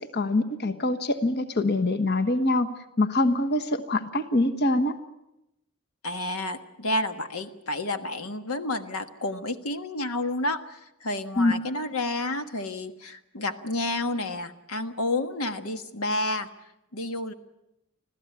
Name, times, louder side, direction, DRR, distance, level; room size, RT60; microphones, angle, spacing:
voice 1, 0.0-2.7 3.0-5.0 11.4-11.5, left 2 dB, 50° left, 7 dB, 1.3 m, -24 dB
voice 2, 6.0-16.5 16.9-17.3, left 2 dB, 75° left, 8 dB, 1.4 m, -30 dB
26.0 x 15.5 x 9.7 m, 0.88 s
head